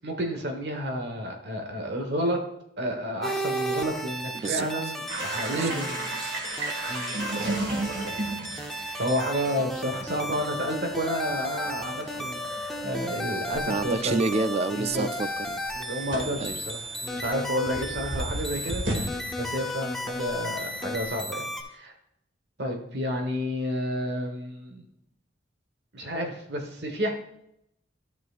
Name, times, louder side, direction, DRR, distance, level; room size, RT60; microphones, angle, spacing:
voice 1, 0.0-2.4 2.8-6.2 6.9-7.6 9.0-14.2 14.8-15.1 15.7-21.4 21.7-21.9 22.6-24.8 25.9-27.1, equal, 65° right, 3 dB, 1.3 m, -31 dB
sound 1, 3.2-21.6, equal, ahead, 0.6 m, -34 dB
voice 2, 4.3-4.7 5.5-5.8 13.7-15.6 16.4-16.6, right 3 dB, 35° right, 13 dB, 0.3 m, -28 dB
sound 2, 5.1-21.3, right 1 dB, 85° right, 2.2 m, -36 dB
13.0 x 6.0 x 2.4 m, 0.78 s
head